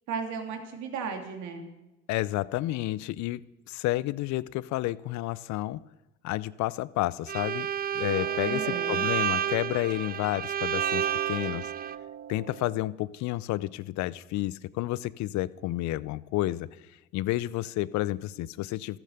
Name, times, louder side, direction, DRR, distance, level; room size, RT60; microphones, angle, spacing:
voice 1, 0.1-1.7 8.4-9.1, right 5 dB, 75° right, 4 dB, 2.9 m, -35 dB
voice 2, 2.1-3.4 3.7-5.8 6.2-7.7 7.9-11.7 12.3-16.7 17.1-19.0, left 17 dB, 75° left, 19 dB, 0.6 m, -30 dB
Bowed string instrument, 7.3-12.0, right 9 dB, 30° right, 0.5 m, -30 dB
sound 1, 8.1-10.4 10.7-12.8, right 7 dB, 60° right, 1.2 m, -42 dB
14.0 x 13.5 x 6.7 m, 1.0 s
supercardioid pair, 65°, 29 cm